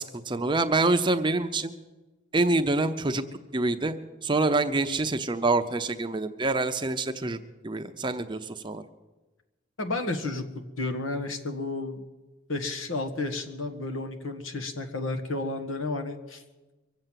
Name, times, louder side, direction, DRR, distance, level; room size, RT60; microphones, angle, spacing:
voice 1, 0.0-1.7 2.3-3.2 3.5-3.9 4.2-7.4 7.6-8.8, right 2 dB, 25° right, 8 dB, 0.6 m, -26 dB
voice 2, 9.8-10.4 10.8-12.0 12.5-16.4, left 2 dB, 90° left, 5 dB, 1.6 m, -32 dB
24.0 x 8.0 x 7.5 m, 1.2 s
head